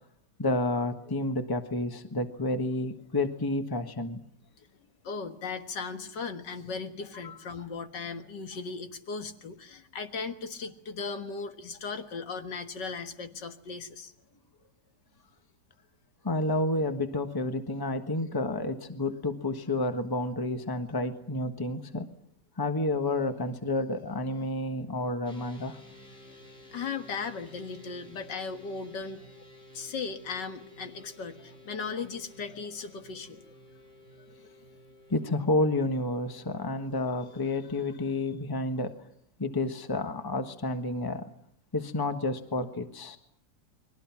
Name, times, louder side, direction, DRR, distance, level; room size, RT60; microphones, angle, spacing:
voice 1, 0.4-4.2 7.2-7.3 16.2-22.1 22.6-25.8 35.1-38.9 39.4-41.2 41.7-43.2, left 2 dB, 15° left, 8 dB, 1.2 m, -30 dB
voice 2, 5.0-14.1 26.7-29.3 29.7-33.5, left 5 dB, 75° left, 7 dB, 2.2 m, -37 dB
sound 1, 25.2-37.4, left 1 dB, 35° left, 5.3 m, -53 dB
29.5 x 22.0 x 6.0 m, 0.66 s
omnidirectional pair, 1.9 m